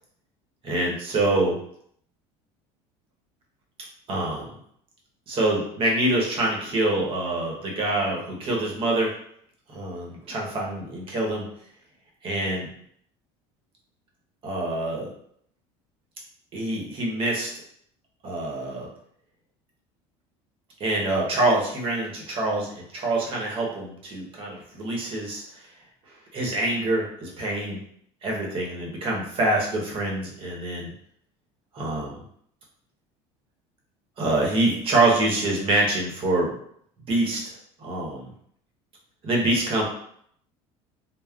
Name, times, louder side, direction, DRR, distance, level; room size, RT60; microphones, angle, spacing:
voice 1, 0.6-1.6 4.1-4.5 5.3-9.1 9.7-11.5 12.2-12.7 14.4-15.1 16.5-17.5 18.2-18.9 20.8-25.4 26.3-27.8 28.2-30.9 31.7-32.2 34.2-36.5 37.1-37.4 37.8-38.3 39.2-39.8, right 2 dB, 40° right, -2 dB, 0.9 m, -25 dB
3.5 x 2.0 x 2.3 m, 0.67 s
cardioid pair, 130°, 14 cm